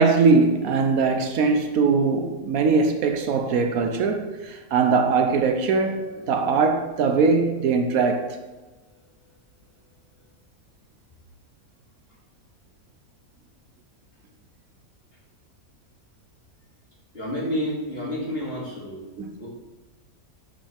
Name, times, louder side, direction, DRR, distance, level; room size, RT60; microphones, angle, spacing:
voice 1, 0.0-8.4, right 4 dB, 70° right, 1.1 m, -21 dB
voice 2, 5.1-6.5 8.9-9.0 17.1-19.1 19.3-19.5, equal, 40° left, 2.6 m, -32 dB
11.5 x 5.5 x 3.4 m
omnidirectional pair, 1.6 m